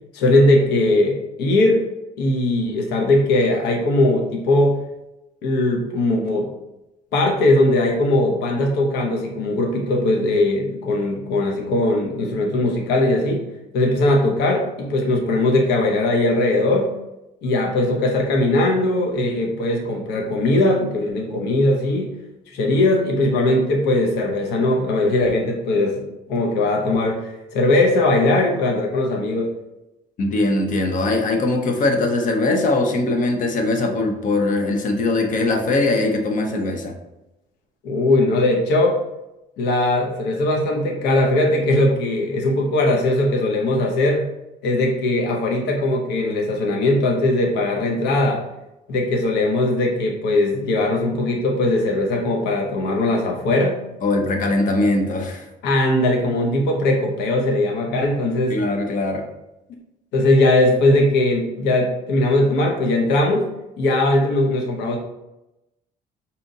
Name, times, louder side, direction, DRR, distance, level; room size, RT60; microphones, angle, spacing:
voice 1, 0.1-1.8 2.2-4.8 5.4-6.5 7.1-13.5 13.7-16.9 17.4-22.1 22.5-29.5 37.8-39.0 39.6-44.2 44.6-48.4 48.9-53.8 55.6-58.6 60.1-63.5 63.8-65.0, left 2 dB, 85° left, 1 dB, 0.7 m, -19 dB
voice 2, 30.2-36.9 54.0-55.5 58.5-59.3, left 2 dB, 50° left, 4 dB, 0.7 m, -21 dB
4.9 x 2.8 x 2.7 m, 0.93 s
cardioid pair, 110°, 17 cm